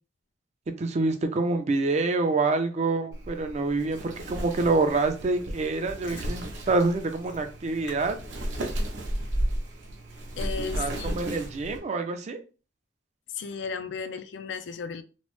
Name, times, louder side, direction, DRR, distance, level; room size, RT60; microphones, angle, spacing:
voice 1, 0.8-8.2 10.8-12.4, right 3 dB, 40° right, 7 dB, 0.4 m, -26 dB
Wind, 3.1-11.8, right 1 dB, 75° right, 0.7 m, -37 dB
Chewing mastication, 6.0-6.3 6.9-7.0 7.2-7.4 7.9-8.0 8.3-9.8 10.1-11.4 11.8-11.9, equal, 85° left, 1.4 m, -32 dB
voice 2, 10.4-11.2 13.3-15.0, left 5 dB, 65° left, 11 dB, 0.4 m, -35 dB
3.0 x 2.0 x 3.0 m, 0.33 s
head